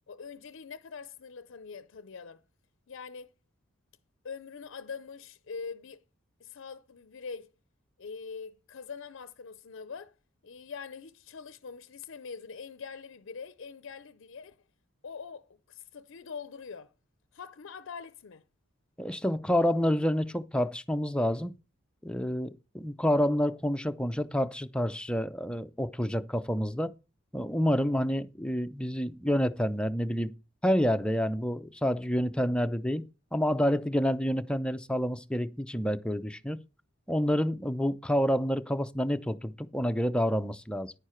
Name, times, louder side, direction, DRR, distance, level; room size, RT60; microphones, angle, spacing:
voice 1, 0.1-2.4 2.9-3.3 4.2-6.0 6.4-7.5 8.0-10.1 10.4-14.6 15.0-16.9 17.3-18.4, left 5 dB, 65° left, 0.5 m, -43 dB
voice 2, 19.0-21.5 22.0-26.9 27.3-30.3 30.6-33.0 33.3-36.6 37.1-40.9, equal, 5° left, 0.5 m, -28 dB
10.5 x 9.6 x 4.4 m
head